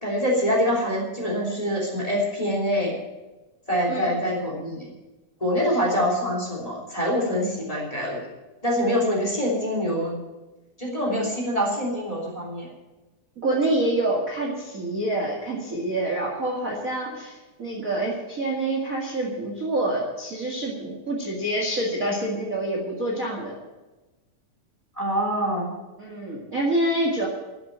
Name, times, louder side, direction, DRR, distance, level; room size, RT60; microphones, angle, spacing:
voice 1, 0.0-2.9 3.7-4.9 5.4-8.2 8.6-10.1 10.8-12.7 25.0-25.7, equal, 10° left, -2 dB, 3.1 m, -25 dB
voice 2, 3.9-4.3 13.4-23.6 26.0-27.3, right 1 dB, 30° right, -2 dB, 2.0 m, -27 dB
12.0 x 8.0 x 9.8 m, 1.1 s
omnidirectional pair, 3.5 m